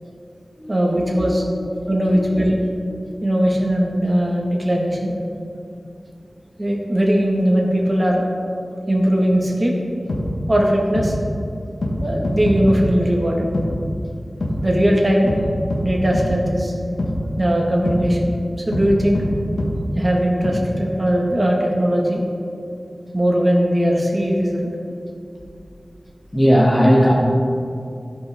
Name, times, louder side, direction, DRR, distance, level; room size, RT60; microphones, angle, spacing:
voice 1, 0.7-1.4 1.9-2.6 3.2-5.1 6.6-8.2 8.9-9.7 10.5-11.1 12.0-13.5 14.6-15.3 15.8-16.7 17.4-18.3 18.7-19.2 19.9-22.2 23.1-24.7, equal, 30° right, -1 dB, 1.7 m, -19 dB
voice 2, 1.8-2.2 26.3-27.1, equal, 25° left, -4 dB, 1.5 m, -16 dB
sound 1, 10.1-10.2 10.9-11.1 11.8-11.9 12.2-12.8 13.5-13.7 14.4-14.5 15.3-15.4 15.7-15.8 16.1-16.3 17.0-17.1 17.8-18.0 18.7-18.9 19.1-19.3 19.6-19.7 20.4-20.5, left 1 dB, 85° left, 1.4 m, -22 dB
13.0 x 5.6 x 3.6 m, 2.5 s
cardioid pair, 45°, 0 cm